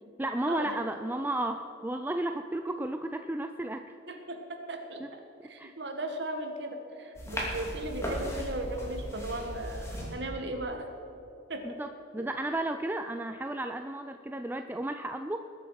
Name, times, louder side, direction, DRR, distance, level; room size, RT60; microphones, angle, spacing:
voice 1, 0.2-3.9 5.0-5.1 5.6-5.7 11.6-15.4, right 1 dB, 10° right, 7 dB, 0.4 m, -33 dB
voice 2, 4.1-5.2 5.5-10.9 11.5-11.8 12.2-12.3, right 1 dB, 60° right, 4 dB, 1.7 m, -37 dB
sound 1, 7.1-10.1, equal, 15° left, 2.7 m, -36 dB
20.5 x 8.3 x 5.8 m, 2.9 s
head